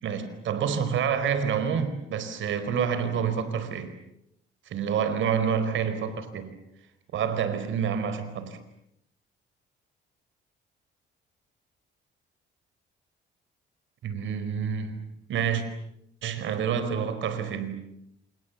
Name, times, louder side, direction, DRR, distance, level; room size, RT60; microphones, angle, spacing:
voice 1, 0.0-3.9 4.7-6.6 7.1-8.6 14.0-15.0 15.3-15.6 16.2-17.8, right 7 dB, 75° right, 4.6 m, -28 dB
28.5 x 28.5 x 7.2 m
cardioid pair, 90°, 20 cm